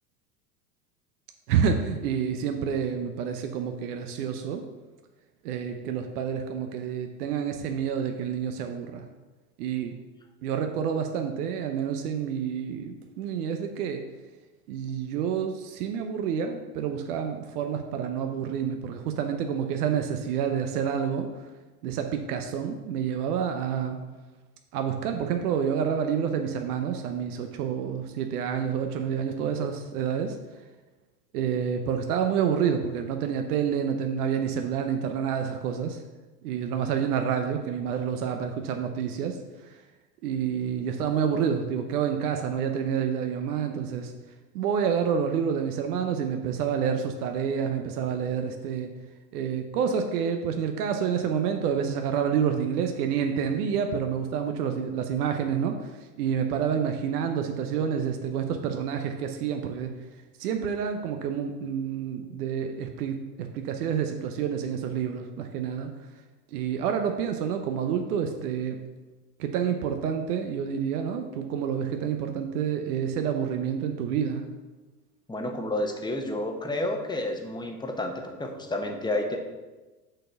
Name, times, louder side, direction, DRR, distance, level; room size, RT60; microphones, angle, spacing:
voice 1, 1.5-4.6 5.4-9.1 9.6-9.9 10.4-14.0 14.7-21.3 21.8-24.0 24.7-30.4 31.3-36.0 36.4-39.4 39.7-39.8 40.2-44.1 44.5-48.9 49.3-55.9 56.2-59.9 60.4-65.9 66.5-68.8 69.4-74.4, right 7 dB, 70° right, 5 dB, 0.9 m, -28 dB
voice 2, 75.3-79.4, left 1 dB, 10° left, 3 dB, 1.1 m, -30 dB
6.6 x 4.2 x 6.4 m, 1.2 s
hypercardioid pair, 90°, 47 cm